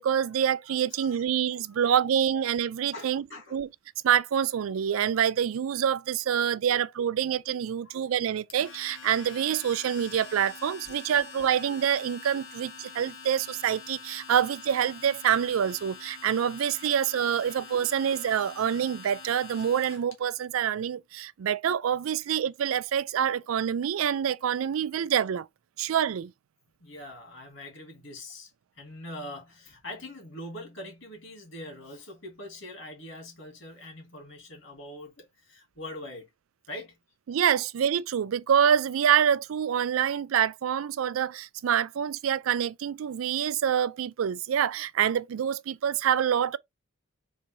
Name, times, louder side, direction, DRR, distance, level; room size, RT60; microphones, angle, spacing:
voice 1, 0.0-3.2 3.5-3.7 4.0-25.5 25.8-26.3 37.3-46.6, right 8 dB, 85° right, 0.4 m, -26 dB
voice 2, 1.7-2.0 2.9-3.6 6.7-6.8 7.8-8.0 10.9-11.0 26.8-28.5 28.8-36.3 36.7-37.0, left 1 dB, 70° left, 2.5 m, -43 dB
Domestic sounds home sounds, 8.5-20.1, left 5 dB, 90° left, 1.4 m, -45 dB
4.2 x 2.6 x 4.5 m
head